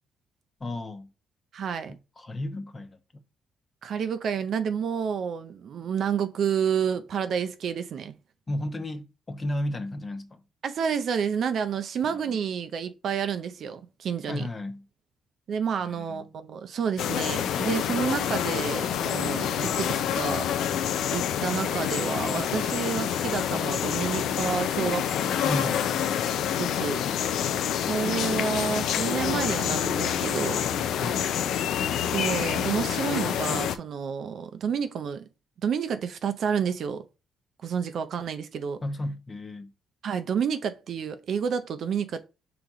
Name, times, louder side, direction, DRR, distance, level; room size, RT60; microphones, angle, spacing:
voice 1, 0.6-1.1 2.2-3.0 8.5-10.4 12.0-12.4 14.2-14.9 15.8-16.2 25.4-26.0 31.0-31.3 38.8-39.7, left 1 dB, 30° left, 0.8 m, -33 dB
voice 2, 1.5-2.0 3.8-8.1 10.6-14.5 15.5-20.5 21.1-25.7 26.6-27.0 27.8-30.6 32.0-35.2 35.6-37.0 37.6-38.8 40.0-42.3, right 7 dB, 65° right, 0.5 m, -30 dB
sound 1, 17.0-33.8, left 9 dB, 80° left, 0.4 m, -27 dB
5.0 x 3.0 x 3.6 m
cardioid pair, 90°, 0 cm